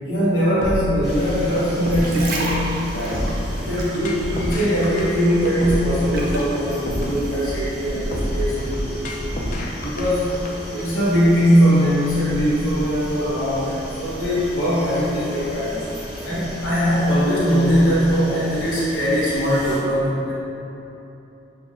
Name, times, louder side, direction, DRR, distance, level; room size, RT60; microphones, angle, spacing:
voice 1, 0.0-3.2 3.6-9.4 9.8-10.3 10.7-15.8 16.2-20.3, equal, 80° left, -10 dB, 1.2 m, -21 dB
sound 1, 0.6-10.5, equal, 45° left, 0.5 m, -28 dB
sound 2, 1.0-19.8, equal, 5° right, 0.9 m, -35 dB
sound 3, 1.8-4.9 5.2-6.6 7.2-7.3, right 2 dB, 50° right, 0.5 m, -31 dB
6.7 x 2.5 x 2.5 m, 3.0 s
head